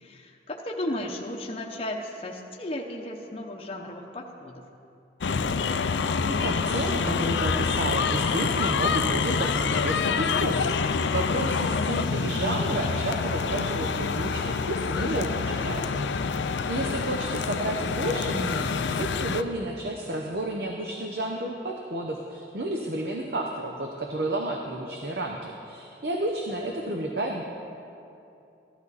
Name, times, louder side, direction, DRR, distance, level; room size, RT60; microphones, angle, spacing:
voice 1, 0.0-4.6, left 1 dB, 30° left, 0 dB, 0.8 m, -35 dB
sound 1, 5.2-19.4, left 5 dB, 75° left, 0.5 m, -27 dB
voice 2, 6.3-16.3 16.7-27.4, right 1 dB, 55° right, 1 dB, 0.8 m, -31 dB
14.5 x 12.5 x 4.1 m, 2.7 s
head